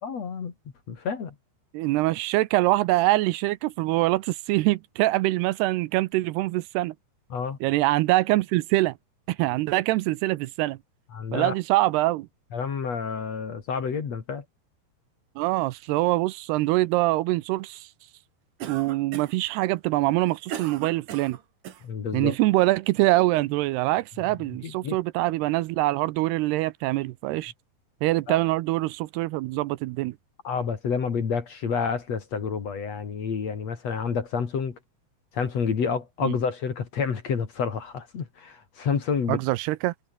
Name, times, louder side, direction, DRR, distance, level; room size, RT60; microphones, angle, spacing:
voice 1, 0.0-0.5 0.9-1.3 7.3-7.6 11.1-11.5 12.5-14.4 21.8-22.4 24.6-25.0 28.3-28.4 30.4-34.8 35.3-39.4, left 6 dB, 45° left, 3.3 m, -29 dB
voice 2, 1.7-6.9 7.6-8.9 9.3-10.8 11.3-12.3 15.4-17.9 18.7-21.4 22.1-27.5 28.0-30.2 36.2-36.3 39.3-39.9, right 18 dB, 85° right, 2.7 m, -24 dB
Cough, 18.6-19.5 20.1-21.9, right 10 dB, 55° right, 3.0 m, -38 dB
omnidirectional pair, 4.8 m